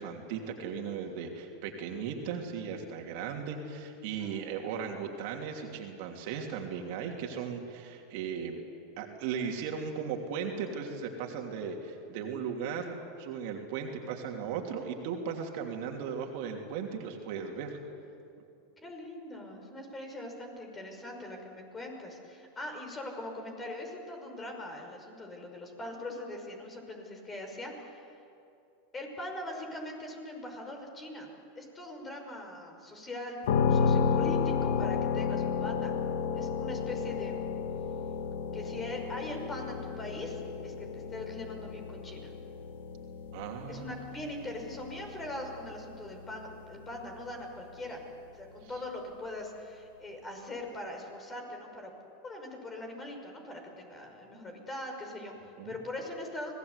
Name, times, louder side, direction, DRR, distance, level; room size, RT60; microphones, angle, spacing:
voice 1, 0.0-8.6 9.0-17.8 43.3-44.0 55.6-55.8, right 6 dB, 60° right, 2 dB, 3.0 m, -37 dB
voice 2, 4.2-4.8 18.8-28.1 28.9-31.3 31.6-33.4 33.7-36.0 36.3-37.6 38.5-42.3 43.7-48.0 48.3-51.9 52.2-56.5, left 1 dB, 20° left, 3 dB, 5.6 m, -41 dB
sound 1, 33.4-47.2, left 6 dB, 70° left, 1.5 m, -32 dB
26.0 x 18.5 x 8.3 m, 2.7 s
hypercardioid pair, 95°, 0 cm